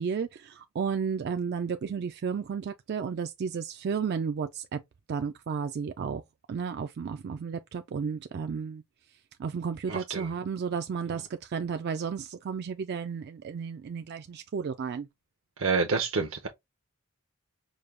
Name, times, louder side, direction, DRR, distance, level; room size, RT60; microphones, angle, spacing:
voice 1, 0.0-4.8 5.1-6.2 6.5-8.8 9.4-15.1, right 6 dB, 50° right, 0.3 m, -33 dB
voice 2, 9.9-10.3 15.6-16.5, right 4 dB, 70° right, 0.7 m, -28 dB
5.0 x 2.2 x 3.2 m
head